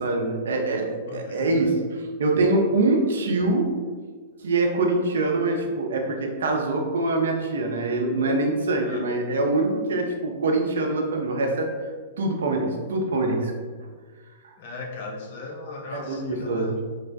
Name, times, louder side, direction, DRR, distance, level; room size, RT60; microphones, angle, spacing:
voice 1, 0.0-1.8 2.2-3.7 4.4-11.7 12.2-13.5 15.9-16.8, right 2 dB, 70° right, 2 dB, 0.4 m, -24 dB
voice 2, 1.1-1.7 8.8-9.1 14.6-16.8, left 3 dB, 55° left, 1 dB, 0.5 m, -37 dB
3.1 x 2.0 x 2.6 m, 1.5 s
figure-of-eight pair, 105°, 0 cm